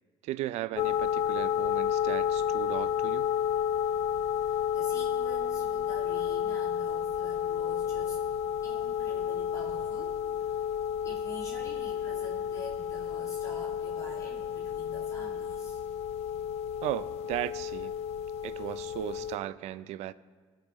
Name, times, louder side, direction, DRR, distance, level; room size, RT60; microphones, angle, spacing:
voice 1, 0.2-3.3 16.8-18.0 18.4-20.1, right 14 dB, 80° right, 0.4 m, -36 dB
sound 1, 0.8-19.4, left 9 dB, 70° left, 0.5 m, -31 dB
voice 2, 4.4-8.2 8.6-15.8, left 2 dB, 30° left, 2.2 m, -47 dB
23.5 x 8.5 x 3.1 m
cardioid pair, 125°, 11 cm